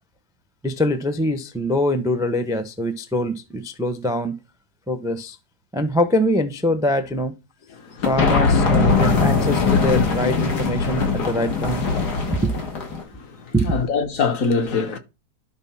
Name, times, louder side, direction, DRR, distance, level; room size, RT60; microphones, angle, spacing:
voice 1, 0.6-4.4 4.9-5.4 5.7-7.3 8.0-11.9 12.3-12.6 13.5-13.8, left 1 dB, 5° right, 0.5 m, -23 dB
sound 1, 8.0-13.0, left 4 dB, 85° left, 2.4 m, -20 dB
voice 2, 13.1-15.0, left 4 dB, 60° left, 1.4 m, -24 dB
11.5 x 3.9 x 5.9 m
omnidirectional pair, 1.7 m